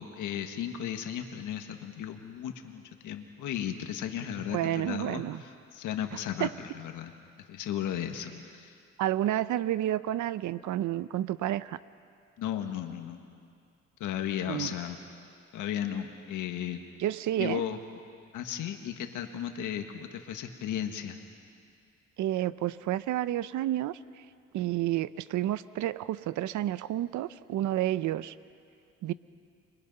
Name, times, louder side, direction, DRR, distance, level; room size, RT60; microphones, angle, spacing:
voice 1, 0.0-7.1 7.5-8.7 12.4-13.2 14.0-15.0 15.5-16.8 17.4-17.8 18.3-21.2, left 10 dB, 85° left, 5 dB, 1.7 m, -35 dB
voice 2, 4.5-5.4 6.4-6.5 9.0-11.8 14.5-14.7 17.0-17.6 22.2-24.0 24.5-28.3 29.0-29.1, right 13 dB, 75° right, 16 dB, 0.7 m, -30 dB
29.5 x 23.5 x 5.5 m, 2.3 s
cardioid pair, 90°, 30 cm